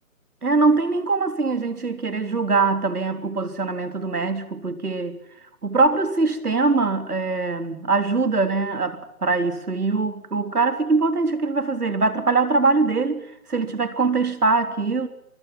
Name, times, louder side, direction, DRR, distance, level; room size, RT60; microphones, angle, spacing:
voice 1, 0.4-5.2 5.6-15.1, right 3 dB, 85° right, 9 dB, 3.6 m, -22 dB
24.5 x 23.0 x 5.9 m, 0.78 s
figure-of-eight pair, 160°, 44 cm